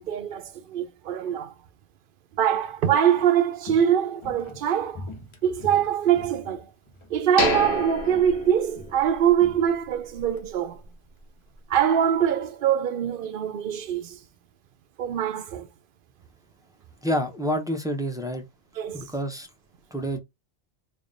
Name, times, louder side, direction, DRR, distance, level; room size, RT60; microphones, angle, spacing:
voice 1, 0.0-1.5 2.3-5.1 5.4-6.7 7.1-10.8 11.7-14.2 15.0-15.7 18.8-19.1, right 9 dB, 60° right, 0.7 m, -23 dB
Walk footsteps, 2.9-7.2 7.5-7.9 8.1-10.5 10.7-10.8, left 1 dB, 35° left, 0.6 m, -44 dB
sound 1, 7.4-9.3 9.6-9.7 10.2-10.4, left 4 dB, 75° left, 1.1 m, -29 dB
voice 2, 17.0-18.4 18.9-19.5 19.9-20.2, equal, 5° right, 0.4 m, -28 dB
3.4 x 2.3 x 3.8 m
omnidirectional pair, 1.1 m